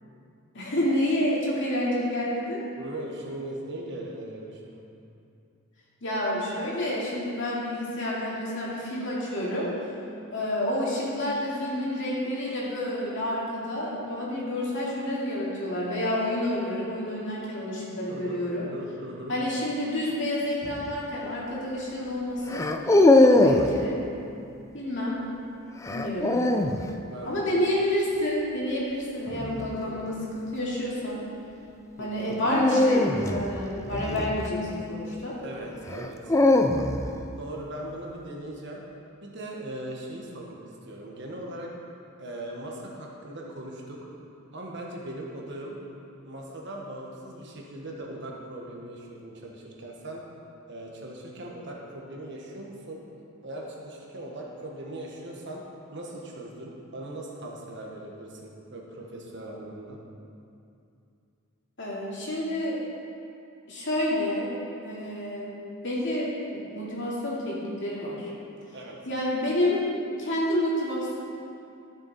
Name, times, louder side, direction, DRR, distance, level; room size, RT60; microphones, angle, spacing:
voice 1, 0.5-2.6 6.0-9.7 10.3-18.7 19.3-22.7 23.1-24.0 24.7-25.2 25.9-26.7 27.2-31.2 32.0-35.3 61.8-62.8 63.7-64.5 64.8-65.5 65.8-68.3 69.1-69.8 70.2-71.2, left 1 dB, 55° left, -6 dB, 2.5 m, -29 dB
voice 2, 2.8-4.8 18.1-19.4 23.3-23.6 27.1-27.7 29.7-30.0 32.0-32.3 35.4-36.3 37.4-38.8 39.2-40.6 40.9-41.7 42.2-44.0 44.5-45.8 46.2-50.2 50.7-53.0 53.4-55.6 55.9-60.0 68.7-69.0, right 1 dB, 55° right, -1 dB, 1.5 m, -39 dB
sound 1, 20.6-21.0 22.5-23.8 25.8-26.8 29.3-29.7 32.4-34.8 35.9-37.2, left 2 dB, 15° left, 0.4 m, -21 dB
14.5 x 6.7 x 4.3 m, 2.6 s
head